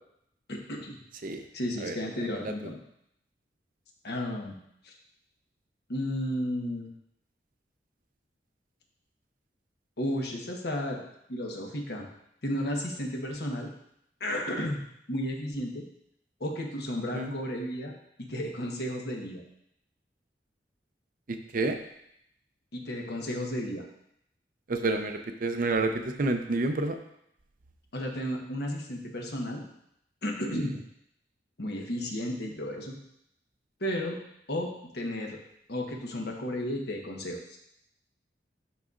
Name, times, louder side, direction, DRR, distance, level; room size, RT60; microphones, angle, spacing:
voice 1, 0.5-1.0 1.5-2.8 4.0-4.6 4.8-4.9 5.9-6.9 10.0-11.0 11.3-12.1 12.4-13.7 14.2-14.8 15.1-15.8 16.4-17.9 18.2-19.4 22.7-23.8 27.9-29.6 30.2-30.8 31.6-33.0 33.8-34.2 34.5-35.4 35.7-37.4, equal, 65° left, 1 dB, 1.1 m, -33 dB
voice 2, 21.3-21.8 24.7-27.0 30.5-30.6, right 2 dB, 50° right, 6 dB, 0.5 m, -29 dB
11.5 x 4.0 x 2.5 m, 0.75 s
head